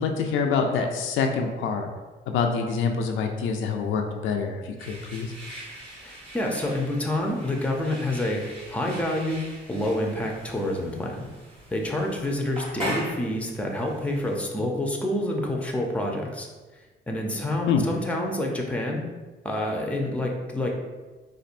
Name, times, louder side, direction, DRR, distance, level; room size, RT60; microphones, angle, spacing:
voice 1, 0.0-1.9 2.3-5.3 17.7-17.8, left 5 dB, 80° left, 3 dB, 0.4 m, -26 dB
sound 1, 4.8-14.4, equal, 25° right, 1.4 m, -40 dB
voice 2, 6.0-9.4 9.7-11.3 11.7-16.5 17.1-19.0 19.4-20.7, left 1 dB, 5° left, 0 dB, 0.6 m, -28 dB
4.2 x 2.5 x 2.5 m, 1.3 s
cardioid pair, 90°, 20 cm